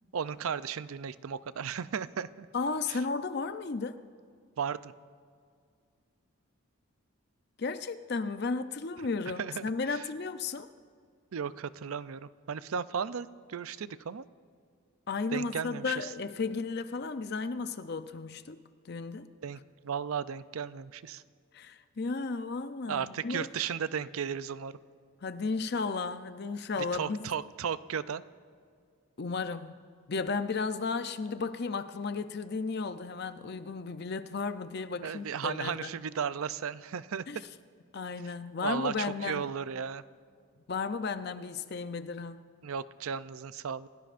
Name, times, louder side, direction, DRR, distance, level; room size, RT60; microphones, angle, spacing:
voice 1, 0.1-2.5 2.9-3.0 4.6-4.9 9.4-10.0 11.3-14.2 15.3-16.1 19.4-21.2 22.9-24.7 26.8-28.2 35.0-37.3 38.6-40.0 42.6-43.9, right 7 dB, 80° right, 15 dB, 0.5 m, -35 dB
voice 2, 2.5-4.0 7.6-10.7 15.1-19.3 21.5-23.5 25.2-27.3 29.2-29.8 30.1-35.9 37.3-37.4 37.9-39.5 40.7-42.5, left 4 dB, 50° left, 10 dB, 0.5 m, -34 dB
29.0 x 17.0 x 2.5 m, 2.2 s
head